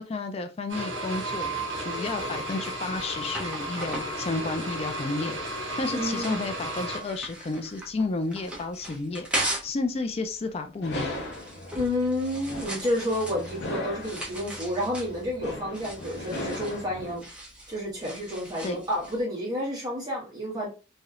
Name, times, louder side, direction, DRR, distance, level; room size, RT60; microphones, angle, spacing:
voice 1, 0.0-1.5 1.8-5.4 5.8-11.1 18.6-18.8, left 3 dB, 30° left, 0.3 m, -31 dB
sound 1, 0.7-7.0, right 1 dB, 70° right, 1.5 m, -33 dB
sound 2, 2.6-9.8 10.1-19.2, right 1 dB, 5° right, 0.8 m, -39 dB
voice 2, 5.9-6.4 11.7-17.2 17.7-20.7, left 1 dB, 20° right, 1.4 m, -30 dB
sound 3, 10.8-17.2, left 1 dB, 60° left, 0.7 m, -38 dB
3.1 x 2.7 x 2.4 m
head